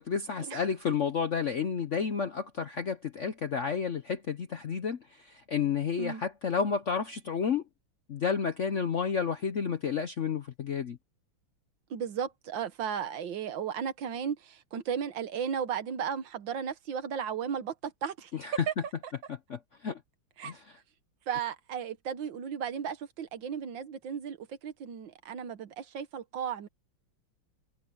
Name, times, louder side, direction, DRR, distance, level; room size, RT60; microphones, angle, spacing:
voice 1, 0.0-7.6 8.1-11.0 18.4-18.6 19.5-20.0 20.4-20.6, left 6 dB, 55° left, 0.8 m, -31 dB
voice 2, 11.9-18.3 18.7-18.8 19.0-19.1 20.4-20.6 21.3-26.7, right 7 dB, 65° right, 1.8 m, -35 dB
omnidirectional pair, 2.2 m